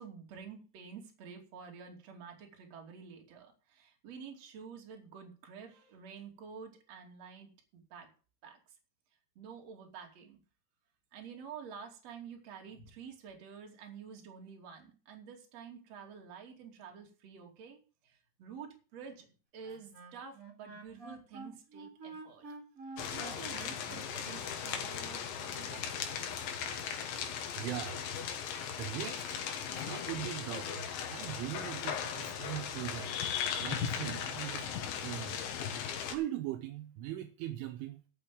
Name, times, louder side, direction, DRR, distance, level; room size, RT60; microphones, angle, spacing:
voice 1, 0.0-8.1 8.4-8.6 9.3-10.4 11.1-22.4 22.8-26.8, right 6 dB, 40° right, 2.9 m, -49 dB
Wind instrument woodwind instrument, 19.6-25.0, right 3 dB, 60° right, 0.9 m, -49 dB
sound 1, 23.0-36.2, left 8 dB, 70° left, 3.5 m, -38 dB
voice 2, 27.3-28.0 28.8-29.4 29.7-33.1 33.6-34.7 35.0-35.4 36.1-38.0, right 13 dB, 80° right, 3.2 m, -40 dB
13.0 x 6.1 x 7.5 m
omnidirectional pair, 6.0 m